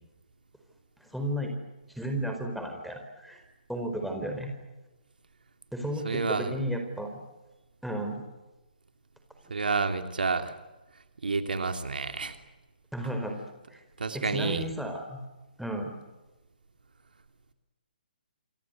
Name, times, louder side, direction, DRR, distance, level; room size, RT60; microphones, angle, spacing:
voice 1, 1.0-1.5 1.9-3.4 3.7-4.5 5.7-7.2 7.8-8.2 12.9-13.4 13.7-13.8 14.1-15.2 15.6-15.9, right 1 dB, ahead, 3 dB, 4.7 m, -33 dB
voice 2, 6.0-6.5 9.5-10.5 11.2-12.3 14.0-14.7, right 4 dB, 70° right, 7 dB, 2.9 m, -29 dB
28.5 x 24.0 x 8.1 m, 1.1 s
figure-of-eight pair, 140°, 5 cm